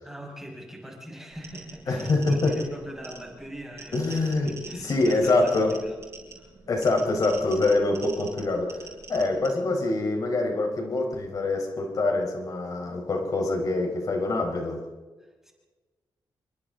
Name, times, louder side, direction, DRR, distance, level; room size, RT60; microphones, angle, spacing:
voice 1, 0.0-6.0 6.4-6.5 15.2-15.5, right 1 dB, 5° right, -1 dB, 5.8 m, -43 dB
sound 1, 1.3-9.5, right 4 dB, 35° right, 7.7 m, -45 dB
voice 2, 1.9-2.6 3.9-5.8 6.7-14.8, left 2 dB, 50° left, 2 dB, 4.5 m, -25 dB
28.0 x 25.0 x 3.9 m, 1.3 s
wide cardioid pair, 135°, 8 cm